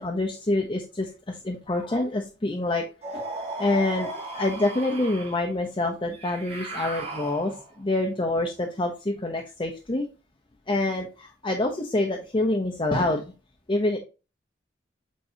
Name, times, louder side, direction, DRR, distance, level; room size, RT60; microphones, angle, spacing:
voice 1, 0.0-2.8 3.1-3.2 3.6-10.1 10.7-13.2 13.7-14.0, left 2 dB, 25° left, 2 dB, 0.8 m, -26 dB
sound 1, 3.0-5.5 6.1-7.8, right 3 dB, 35° right, 1.8 m, -36 dB
8.3 x 4.5 x 2.8 m, 0.31 s
head